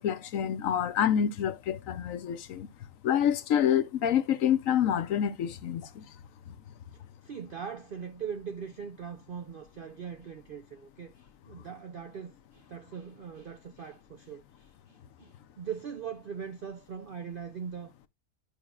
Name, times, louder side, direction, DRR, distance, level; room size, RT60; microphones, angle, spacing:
voice 1, 0.0-2.7 3.0-6.0, left 9 dB, 70° left, 1.0 m, -27 dB
voice 2, 7.2-18.1, right 7 dB, 60° right, 0.5 m, -41 dB
11.0 x 5.5 x 2.4 m
omnidirectional pair, 1.6 m